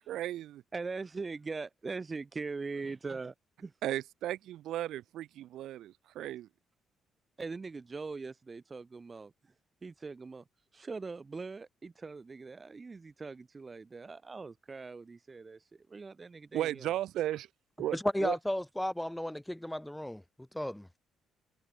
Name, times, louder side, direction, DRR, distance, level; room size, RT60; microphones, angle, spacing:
voice 1, 0.1-0.6 3.8-6.5 16.5-17.5 17.8-18.3, right 13 dB, 65° right, 1.5 m, -35 dB
voice 2, 0.7-3.3 3.6-3.7 7.4-9.3 9.8-10.4 10.7-15.6 15.9-16.9, right 4 dB, 35° right, 4.7 m, -41 dB
voice 3, 17.9-20.2 20.5-20.9, left 1 dB, 5° left, 2.6 m, -33 dB
hypercardioid pair, 45°, 0 cm